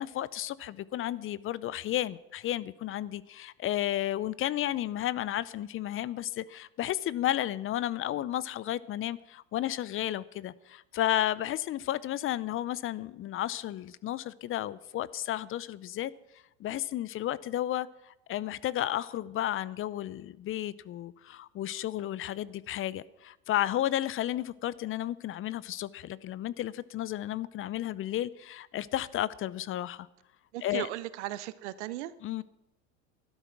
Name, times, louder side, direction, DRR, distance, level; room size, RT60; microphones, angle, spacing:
voice 1, 0.0-16.1 16.6-30.1 30.6-30.9 32.2-32.4, left 13 dB, 35° left, 0.6 m, -33 dB
voice 2, 30.5-32.1, right 15 dB, 75° right, 1.0 m, -36 dB
13.0 x 12.0 x 6.0 m
hypercardioid pair, 90°, 35 cm